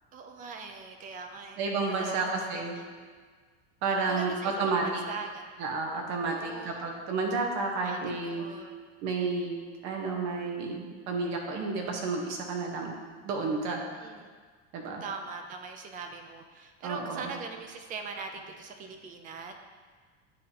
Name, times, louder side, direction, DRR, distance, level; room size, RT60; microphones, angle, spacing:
voice 1, 0.1-1.6 1.9-2.3 2.5-2.8 4.1-5.5 6.2-6.9 7.8-8.7 14.0-14.3 15.0-19.5, right 4 dB, 25° right, 5 dB, 0.3 m, -41 dB
voice 2, 1.6-2.7 3.8-5.0 5.6-8.4 9.0-9.6 9.8-12.9 13.2-13.8 14.7-15.0 16.8-17.3, right 3 dB, 45° right, 1 dB, 1.1 m, -31 dB
9.7 x 3.4 x 2.8 m, 1.5 s
supercardioid pair, 145°, 36 cm